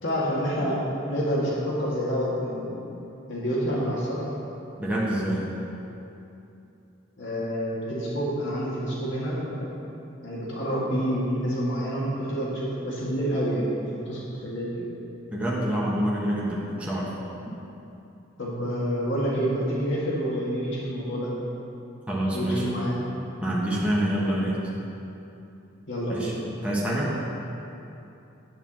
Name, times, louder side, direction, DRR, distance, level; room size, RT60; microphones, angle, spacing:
voice 1, 0.0-2.9 3.3-4.3 7.2-9.8 10.2-14.9 18.4-21.3 22.3-23.0 25.9-26.4, equal, 65° left, -6 dB, 1.8 m, -28 dB
voice 2, 4.8-5.4 15.3-17.1 17.5-17.6 22.1-22.6 23.4-24.6 26.1-26.3 26.6-27.2, right 1 dB, 5° right, -6 dB, 1.1 m, -26 dB
9.4 x 4.4 x 7.3 m, 2.8 s
head